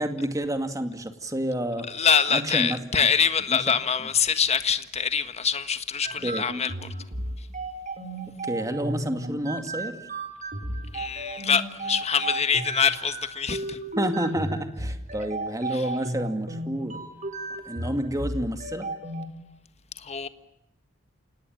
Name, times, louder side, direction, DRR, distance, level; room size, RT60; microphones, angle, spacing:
voice 1, 0.0-1.9 2.3-2.8 3.5-3.7 4.0-4.1 6.2-6.5 8.4-10.0 14.0-17.0 17.7-18.9, right 1 dB, 15° right, 2.4 m, -29 dB
voice 2, 1.9-6.7 10.9-13.8 15.7-15.8 20.0-20.3, left 6 dB, 35° left, 1.5 m, -24 dB
sound 1, 6.0-19.3, right 1 dB, 40° right, 4.2 m, -34 dB
28.0 x 19.0 x 9.1 m
head